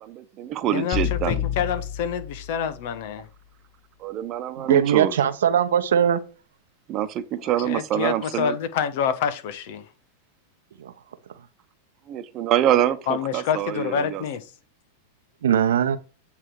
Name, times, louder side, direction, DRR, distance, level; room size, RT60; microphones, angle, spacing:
voice 1, 0.0-1.4 4.0-5.2 6.9-8.6 12.1-14.2, right 11 dB, 40° right, 1.0 m, -25 dB
voice 2, 0.7-3.3 7.4-9.8 13.1-14.5, left 7 dB, 60° left, 1.2 m, -27 dB
sound 1, 0.9-3.0, left 10 dB, 25° left, 1.4 m, -29 dB
voice 3, 4.6-6.2 10.8-10.9 15.4-16.0, right 9 dB, 80° right, 0.9 m, -20 dB
8.5 x 3.5 x 4.8 m
hypercardioid pair, 110°, 0 cm